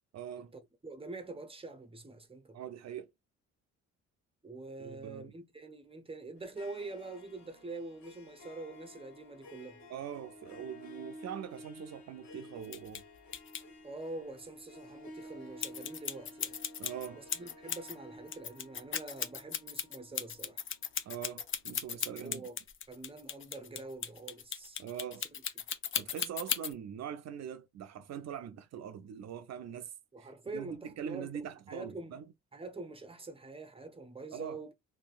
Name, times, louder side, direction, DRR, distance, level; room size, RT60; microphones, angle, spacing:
voice 1, 0.1-0.5 2.5-3.1 4.8-5.3 9.9-13.0 16.8-17.2 21.1-22.5 24.8-25.3 25.9-29.9 30.2-32.3 34.3-34.6, right 9 dB, 60° right, 0.5 m, -42 dB
voice 2, 0.8-2.6 4.4-9.9 13.8-16.6 17.1-20.6 22.2-22.6 22.9-24.8 25.3-25.4 30.1-32.2 32.5-34.7, right 2 dB, 20° right, 0.8 m, -45 dB
Harp, 6.4-21.7, left 1 dB, 65° left, 1.1 m, -53 dB
sound 1, 12.6-13.0 13.3-13.6 15.6-17.9 18.3-26.7, left 8 dB, 45° left, 0.5 m, -36 dB
2.8 x 2.7 x 2.4 m
cardioid pair, 90°, 30 cm